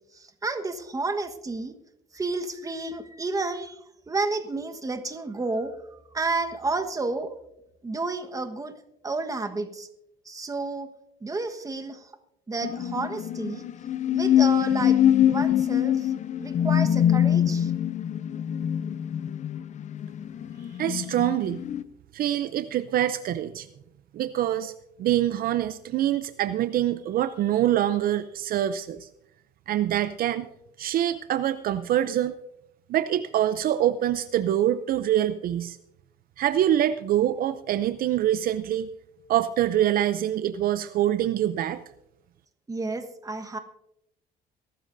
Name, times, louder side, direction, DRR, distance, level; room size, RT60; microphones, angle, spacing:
voice 1, 0.1-1.7 2.1-3.8 4.1-5.7 6.1-7.4 7.8-8.7 9.0-9.9 10.3-10.9 11.2-12.1 12.5-13.6 14.1-15.0 15.3-16.1 16.4-17.7 42.7-43.6, right 3 dB, 20° right, 7 dB, 1.3 m, -31 dB
sound 1, 12.6-21.8, left 10 dB, 45° left, 0.6 m, -24 dB
voice 2, 20.8-21.6 22.1-23.7 24.1-24.7 25.0-29.1 29.7-30.5 30.8-32.3 32.9-35.8 36.4-38.9 39.3-41.8, right 12 dB, 60° right, 13 dB, 0.5 m, -25 dB
22.5 x 12.5 x 2.6 m, 0.83 s
cardioid pair, 110°, 17 cm